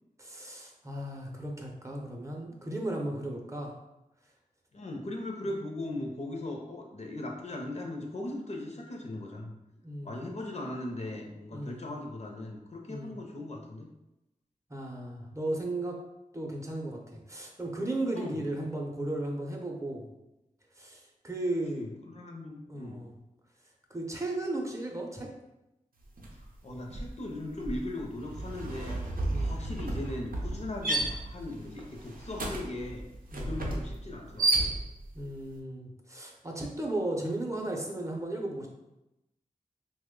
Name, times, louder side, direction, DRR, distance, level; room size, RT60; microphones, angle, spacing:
voice 1, 0.2-3.8 9.8-10.3 11.5-11.9 12.9-13.2 14.7-16.0 16.3-20.1 20.8-21.9 22.7-23.1 23.9-25.3 29.2-29.6 33.3-33.5 35.1-38.7, right 1 dB, 20° right, 0 dB, 0.6 m, -35 dB
voice 2, 4.7-9.5 10.0-13.9 18.1-18.4 21.7-23.0 26.6-29.0 29.3-33.1 33.4-34.8, left 1 dB, 50° left, 1 dB, 0.6 m, -38 dB
sound 1, 26.2-26.5 26.7-35.2, right 2 dB, 85° right, 0.5 m, -33 dB
3.0 x 2.1 x 3.6 m, 0.92 s
wide cardioid pair, 55°, 14 cm